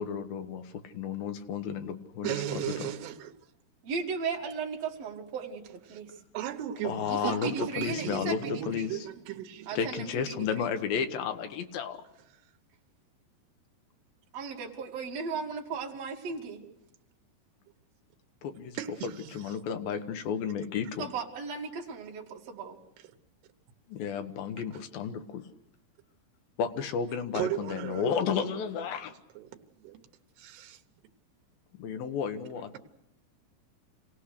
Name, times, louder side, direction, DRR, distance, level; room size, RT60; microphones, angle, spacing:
voice 1, 0.0-2.9 6.8-9.0 9.7-12.0 18.4-18.8 19.3-21.1 23.9-25.2 26.6-29.1 31.8-32.8, left 7 dB, 70° left, 2.9 m, -32 dB
voice 2, 2.2-3.3 5.9-6.0 6.3-9.9 18.7-19.5 27.3-28.1 28.5-28.6 29.4-30.1 30.4-30.8, right 11 dB, 90° right, 3.1 m, -36 dB
voice 3, 3.8-6.1 7.1-8.9 9.7-10.7 14.3-16.6 21.0-22.8, right 5 dB, 45° right, 3.2 m, -36 dB
27.0 x 18.0 x 6.7 m
omnidirectional pair, 4.6 m